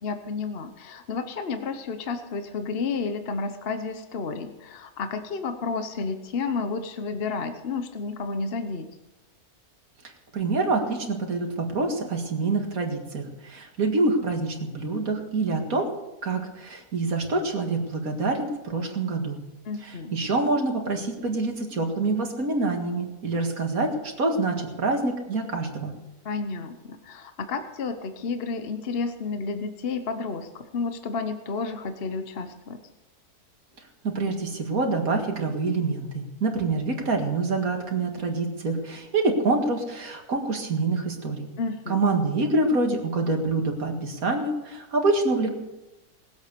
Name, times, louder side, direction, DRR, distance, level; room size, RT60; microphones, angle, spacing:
voice 1, 0.0-8.9 19.7-20.1 26.2-32.8 41.6-42.0, left 4 dB, 45° left, 8 dB, 1.1 m, -31 dB
voice 2, 10.3-15.9 16.2-19.4 19.8-25.9 34.0-41.5 41.9-45.5, right 3 dB, 70° right, 3 dB, 2.4 m, -26 dB
19.5 x 8.1 x 6.7 m, 1.0 s
omnidirectional pair, 1.6 m